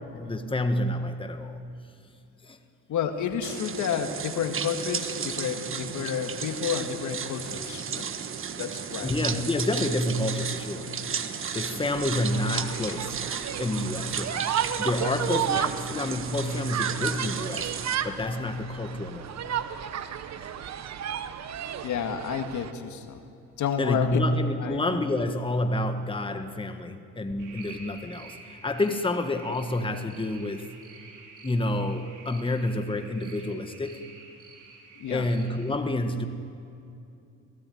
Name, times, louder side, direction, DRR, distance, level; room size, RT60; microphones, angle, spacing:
voice 1, 0.1-1.6 2.5-2.6 9.0-10.9 11.5-13.3 13.6-14.5 14.8-17.7 18.0-19.3 23.8-30.6 31.4-34.0 35.1-36.3, left 1 dB, 15° left, 7 dB, 1.6 m, -28 dB
voice 2, 2.9-8.1 8.6-9.1 12.7-13.0 16.5-16.6 21.8-23.2 23.6-24.3 24.6-24.8 35.0-35.3, left 7 dB, 75° left, 6 dB, 2.0 m, -30 dB
sound 1, 3.4-18.0, right 7 dB, 45° right, 1.3 m, -34 dB
sound 2, 11.9-22.7, right 9 dB, 60° right, 1.2 m, -33 dB
sound 3, 27.4-35.7, right 4 dB, 85° right, 4.9 m, -48 dB
23.5 x 17.0 x 9.4 m, 2.7 s
cardioid pair, 90°, 30 cm